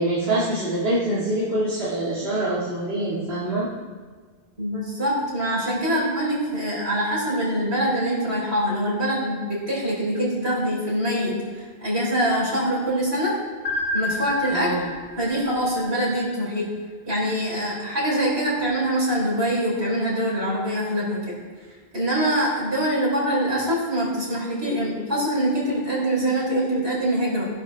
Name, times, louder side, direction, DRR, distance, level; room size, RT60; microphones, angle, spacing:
voice 1, 0.0-3.7 5.8-6.0 14.5-14.9, right 1 dB, 70° right, -9 dB, 2.4 m, -25 dB
voice 2, 4.6-13.3 13.9-14.7 15.2-16.7 17.1-21.3 21.9-27.5, equal, 85° right, -5 dB, 4.5 m, -24 dB
sound 1, 13.6-16.6, left 1 dB, 50° left, 1.5 m, -30 dB
17.5 x 11.0 x 3.5 m, 1.5 s
omnidirectional pair, 1.1 m